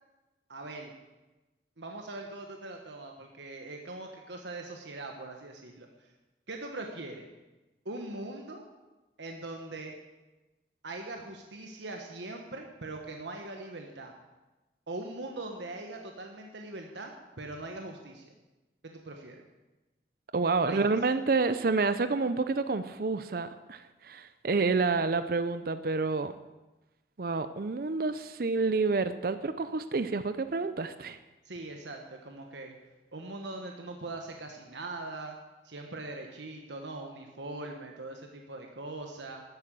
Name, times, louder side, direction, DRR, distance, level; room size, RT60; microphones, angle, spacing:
voice 1, 0.5-0.9 1.8-5.9 6.5-7.3 7.8-8.6 9.2-9.9 10.8-14.1 14.9-17.1 17.4-18.3 18.8-19.4 20.6-20.8 31.4-32.7 33.1-35.4 35.6-39.4, right 2 dB, 80° right, 2 dB, 1.4 m, -41 dB
voice 2, 20.3-26.3 27.2-31.2, right 4 dB, 55° right, 11 dB, 0.6 m, -29 dB
13.0 x 8.8 x 7.6 m, 1.1 s
head